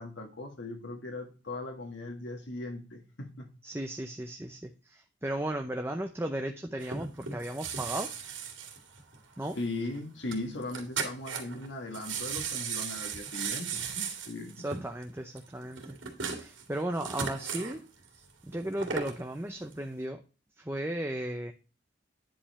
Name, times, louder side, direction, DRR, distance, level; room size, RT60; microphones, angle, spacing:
voice 1, 0.0-3.5 9.6-14.5, left 2 dB, 80° left, 2 dB, 1.8 m, -38 dB
voice 2, 3.6-8.1 9.4-9.6 14.6-15.9 16.2-17.8 18.1-20.2 20.6-21.5, right 1 dB, 15° right, 5 dB, 0.6 m, -35 dB
sound 1, 6.8-9.6 9.8-10.0 10.3-10.4 10.6-11.7 11.9-17.8 18.5-19.2 19.7-19.8, right 6 dB, 90° right, 2.5 m, -36 dB
10.0 x 5.3 x 4.2 m, 0.34 s
head